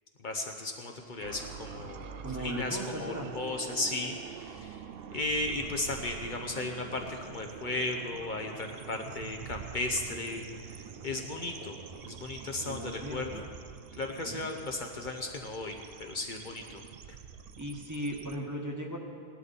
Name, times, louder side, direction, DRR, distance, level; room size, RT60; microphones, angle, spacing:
voice 1, 0.2-4.2 4.5-4.8 5.1-10.4 11.0-13.4 13.9-16.8, left 2 dB, 50° left, 3 dB, 1.0 m, -35 dB
sound 1, 1.2-18.4, right 7 dB, 70° right, 0.8 m, -45 dB
voice 2, 2.2-3.3 3.8-3.9 12.6-13.4 14.2-14.4 17.6-19.0, equal, 20° right, -1 dB, 1.3 m, -37 dB
17.5 x 11.5 x 4.1 m, 2.1 s
omnidirectional pair, 1.0 m